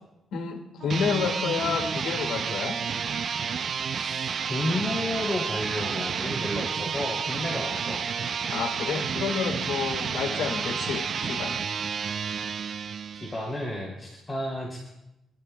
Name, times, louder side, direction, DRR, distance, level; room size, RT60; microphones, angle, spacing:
voice 1, 0.3-2.8 8.5-11.6, left 6 dB, 80° left, 4 dB, 1.4 m, -29 dB
sound 1, 0.8-13.6, right 6 dB, 50° right, 0.3 m, -30 dB
voice 2, 3.9-8.3 13.1-14.8, left 1 dB, 10° left, -4 dB, 2.5 m, -32 dB
24.5 x 11.0 x 2.2 m, 0.89 s
cardioid pair, 110°, 0 cm